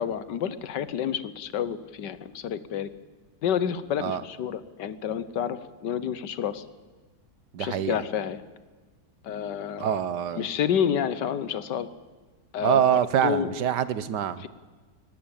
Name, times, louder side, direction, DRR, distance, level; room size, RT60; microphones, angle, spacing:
voice 1, 0.0-2.9 3.4-6.6 7.6-8.4 9.2-10.0 10.3-11.9 12.5-12.8 13.2-13.5 14.4-14.5, left 8 dB, 85° left, 15 dB, 1.6 m, -29 dB
voice 2, 7.5-8.0 9.8-10.5 12.6-14.4, right 9 dB, 80° right, 15 dB, 1.6 m, -25 dB
23.0 x 18.5 x 8.8 m, 1.3 s
omnidirectional pair, 1.8 m